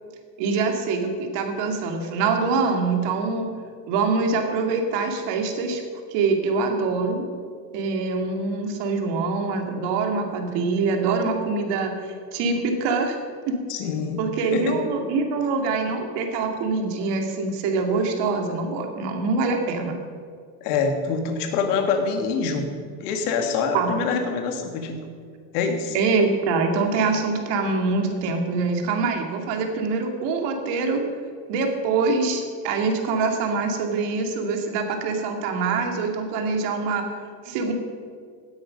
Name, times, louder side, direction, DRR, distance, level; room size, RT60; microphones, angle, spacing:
voice 1, 0.4-3.5 3.9-5.8 6.1-7.2 7.7-13.2 13.5-13.6 14.2-20.0 23.7-23.9 25.9-31.0 31.5-37.0 37.4-37.7, right 4 dB, 65° right, 3 dB, 2.5 m, -24 dB
voice 2, 13.7-14.2 14.5-14.8 20.6-22.7 23.0-25.0 25.5-26.0, left 5 dB, 85° left, 5 dB, 2.2 m, -25 dB
16.5 x 9.7 x 5.3 m, 2.1 s
cardioid pair, 140°, 45 cm